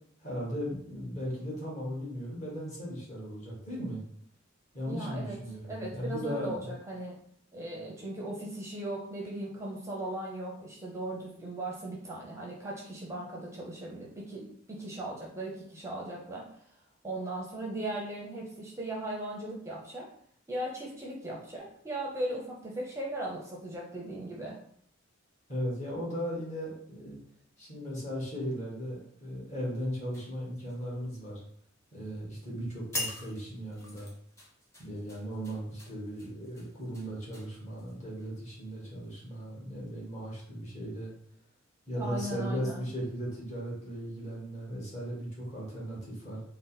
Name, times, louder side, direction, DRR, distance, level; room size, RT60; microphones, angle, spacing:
voice 1, 0.2-4.0 4.7-6.7 25.5-27.2 27.6-31.4 31.9-34.1 34.8-41.1 41.9-46.4, equal, 35° left, -4 dB, 1.6 m, -37 dB
voice 2, 4.9-7.2 7.5-16.5 17.0-20.1 20.5-24.6 42.0-42.8, right 1 dB, 15° right, -3 dB, 0.6 m, -38 dB
sound 1, 30.1-31.4 31.7-32.1 32.5-32.6 32.9-38.3 38.8-39.0, left 1 dB, 15° left, 1.0 m, -43 dB
3.9 x 2.2 x 4.0 m, 0.63 s
head